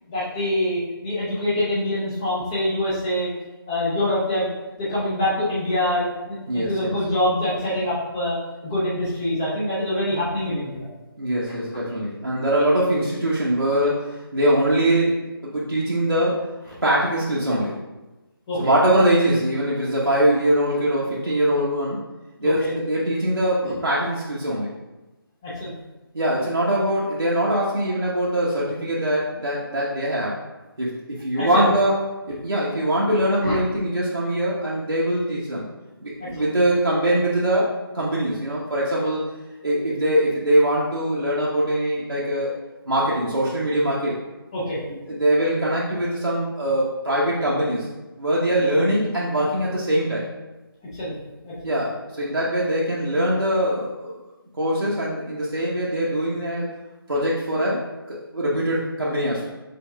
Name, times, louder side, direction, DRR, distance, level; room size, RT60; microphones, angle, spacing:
voice 1, 0.1-3.3 3.7-4.5 4.8-8.4 8.6-10.9 11.5-11.6 18.5-18.6 22.4-22.7 23.6-23.7 25.4-25.7 31.4-31.7 33.4-33.5 36.2-36.3 44.5-44.8 50.9-51.1 51.4-51.7, left 1 dB, 10° left, -8 dB, 0.5 m, -25 dB
voice 2, 6.5-7.0 11.2-15.2 15.4-16.4 16.8-17.8 18.6-22.0 22.4-24.7 26.1-30.4 30.8-32.0 32.3-35.7 36.0-39.3 39.6-42.5 42.9-44.1 44.9-47.9 48.2-50.2 51.6-54.1 54.6-56.7 57.1-59.5, right 1 dB, 80° right, -7 dB, 0.9 m, -22 dB
5.3 x 4.2 x 2.2 m, 1.1 s
figure-of-eight pair, 150°, 13 cm